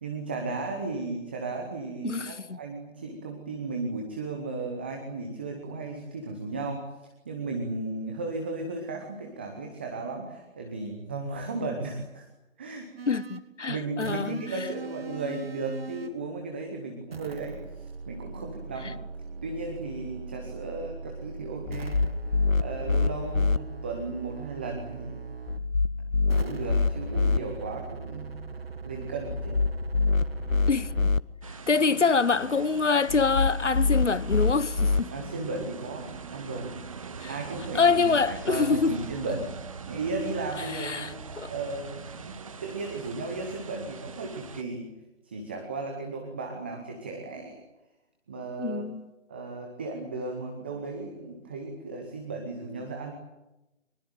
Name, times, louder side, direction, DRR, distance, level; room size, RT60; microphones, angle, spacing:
voice 1, 0.0-6.9 7.2-12.3 12.6-12.9 13.7-19.0 19.4-22.0 22.6-25.3 26.3-28.4 28.8-29.6 35.1-36.7 37.3-39.5 39.8-41.2 41.5-45.0 45.2-47.6 48.3-48.8 49.3-53.1, right 3 dB, 10° right, 0.9 m, -35 dB
voice 2, 2.0-2.6 13.1-14.4 18.8-18.9 30.7-31.1 31.5-35.1 37.2-37.3 37.7-39.0 40.6-41.5 48.6-49.1, left 4 dB, 65° left, 1.3 m, -26 dB
sound 1, 13.0-13.5 14.0-16.2 17.1-25.7 26.3-31.1, right 5 dB, 50° right, 1.7 m, -40 dB
sound 2, 21.7-23.6 25.5-27.4 29.3-31.2 33.1-35.0, left 4 dB, 85° left, 1.1 m, -25 dB
sound 3, 31.4-44.6, right 5 dB, 25° right, 1.3 m, -42 dB
24.5 x 22.0 x 9.0 m
figure-of-eight pair, 155°, 38 cm